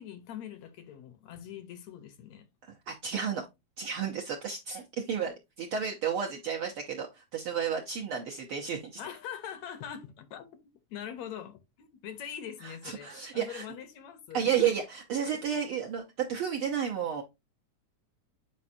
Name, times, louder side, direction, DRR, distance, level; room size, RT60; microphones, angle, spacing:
voice 1, 0.0-2.5 9.0-10.5 10.9-14.7 15.2-15.4, left 9 dB, 70° left, 1.9 m, -43 dB
voice 2, 2.9-3.4 3.8-9.0 12.6-13.6 14.3-17.2, right 8 dB, 70° right, 1.3 m, -32 dB
8.5 x 5.2 x 2.6 m
omnidirectional pair, 3.5 m